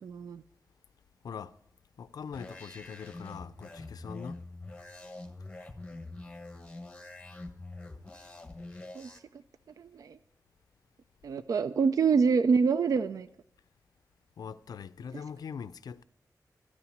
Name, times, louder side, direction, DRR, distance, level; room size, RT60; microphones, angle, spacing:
voice 1, 0.0-0.4 9.0-9.2 9.8-10.2 11.2-13.3, right 5 dB, 65° right, 0.3 m, -26 dB
voice 2, 1.2-1.6 2.0-4.4 14.4-16.0, left 6 dB, 80° left, 0.4 m, -42 dB
sound 1, 2.3-9.2, left 2 dB, 15° left, 1.0 m, -45 dB
13.0 x 5.8 x 9.2 m
wide cardioid pair, 175°, 7 cm